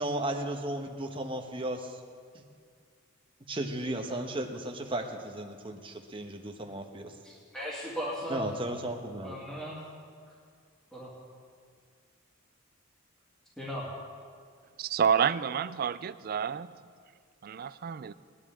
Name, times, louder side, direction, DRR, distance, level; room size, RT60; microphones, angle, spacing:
voice 1, 0.0-2.0 3.5-7.1 8.3-9.4, right 1 dB, 25° right, 1.1 m, -35 dB
voice 2, 7.2-8.4 9.2-9.8 10.9-11.1 13.6-13.9, equal, 5° left, 2.3 m, -37 dB
voice 3, 14.8-16.7 17.4-18.1, right 7 dB, 50° right, 0.4 m, -29 dB
20.0 x 10.5 x 3.7 m
head